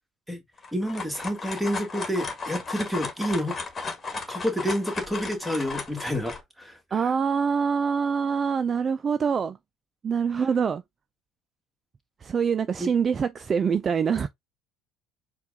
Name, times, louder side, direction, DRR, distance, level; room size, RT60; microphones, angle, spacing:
sound 1, 0.6-6.4, left 4 dB, 30° left, 1.5 m, -35 dB
voice 1, 0.7-3.6 4.3-7.1 12.8-12.9, equal, 5° right, 1.5 m, -29 dB
voice 2, 6.9-9.6 10.0-10.8 12.2-14.3, right 6 dB, 35° right, 0.3 m, -25 dB
4.4 x 2.3 x 3.5 m
hypercardioid pair, 75°, 0 cm